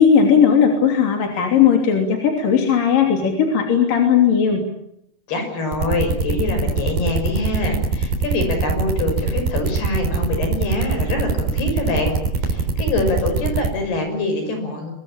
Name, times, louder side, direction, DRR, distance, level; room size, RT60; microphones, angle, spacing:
voice 1, 0.0-4.6, left 7 dB, 55° left, 3 dB, 4.6 m, -16 dB
voice 2, 5.3-12.1 12.4-14.9, left 2 dB, 70° left, 6 dB, 8.1 m, -24 dB
sound 1, 5.7-13.7, right 4 dB, 60° right, 5.6 m, -21 dB
24.5 x 22.5 x 8.8 m, 0.74 s
omnidirectional pair, 4.7 m